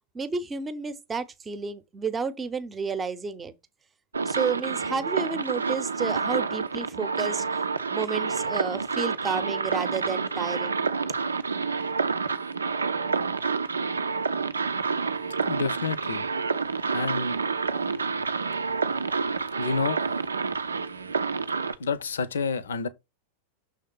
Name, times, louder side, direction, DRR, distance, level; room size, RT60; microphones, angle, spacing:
voice 1, 0.1-3.6 4.3-7.4 7.9-10.9, right 5 dB, 15° right, 0.8 m, -31 dB
sound 1, 4.1-21.7, right 4 dB, 75° right, 0.5 m, -28 dB
voice 2, 15.4-16.3 16.9-17.4 19.6-20.0 21.8-22.9, left 4 dB, 65° left, 0.7 m, -29 dB
6.4 x 3.6 x 5.6 m
figure-of-eight pair, 90°, 0 cm